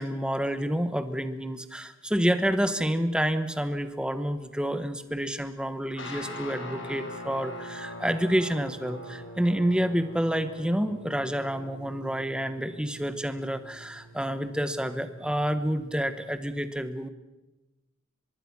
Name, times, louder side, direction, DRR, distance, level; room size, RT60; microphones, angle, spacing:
voice 1, 0.0-17.1, equal, 5° right, 10 dB, 1.2 m, -28 dB
sound 1, 5.9-16.4, equal, 65° left, 4.7 m, -43 dB
24.5 x 21.5 x 6.1 m, 1.1 s
head